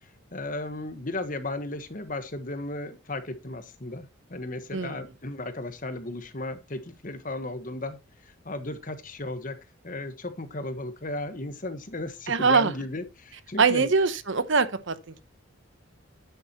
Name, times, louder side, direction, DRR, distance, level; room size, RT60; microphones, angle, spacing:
voice 1, 0.3-8.0 8.2-9.6 9.8-13.9, left 2 dB, 40° left, 1.3 m, -35 dB
voice 2, 12.3-12.7 13.6-15.2, right 4 dB, 60° right, 0.9 m, -23 dB
9.6 x 8.6 x 2.9 m
head